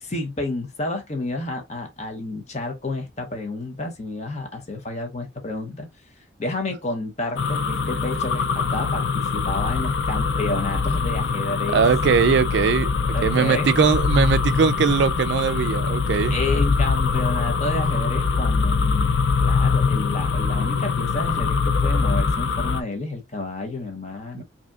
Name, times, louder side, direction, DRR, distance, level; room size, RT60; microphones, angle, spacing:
voice 1, 0.0-5.9 6.4-11.8 13.1-13.7 16.3-24.4, left 2 dB, 35° left, 0.7 m, -30 dB
sound 1, 7.4-22.8, left 5 dB, 60° left, 0.4 m, -23 dB
voice 2, 11.7-12.9 13.2-16.4 24.3-24.4, right 6 dB, 60° right, 0.3 m, -20 dB
5.0 x 2.8 x 2.3 m
head